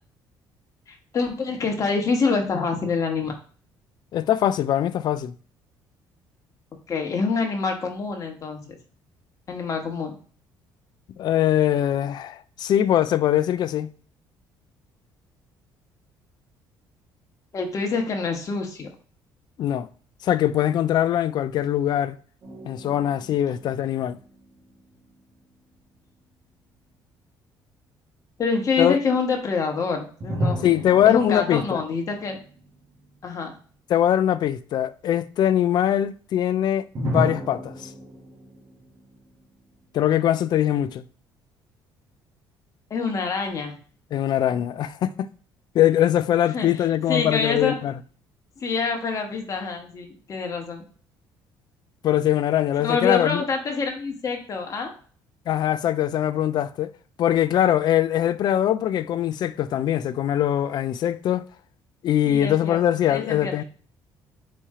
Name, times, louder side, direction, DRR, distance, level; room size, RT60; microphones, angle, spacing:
voice 1, 0.9-3.3 6.9-8.8 9.5-10.1 17.5-18.9 28.4-30.6 31.1-32.4 33.2-33.5 42.9-43.7 46.5-47.7 48.6-50.8 52.8-54.9 62.2-62.8 63.1-63.5, left 4 dB, 40° left, 1.3 m, -26 dB
voice 2, 4.1-5.4 11.2-13.9 19.6-19.9 20.2-22.2 22.6-24.2 28.8-29.0 30.6-31.8 33.9-37.9 39.9-41.0 44.1-45.3 45.7-47.9 52.0-53.4 55.5-56.9 57.2-61.5 62.0-63.6, left 11 dB, 55° left, 0.4 m, -22 dB
sound 1, 22.4-25.7 30.2-33.3 33.5-33.6 37.0-40.3, equal, 45° right, 1.5 m, -33 dB
4.3 x 3.0 x 3.7 m
cardioid pair, 105°, 8 cm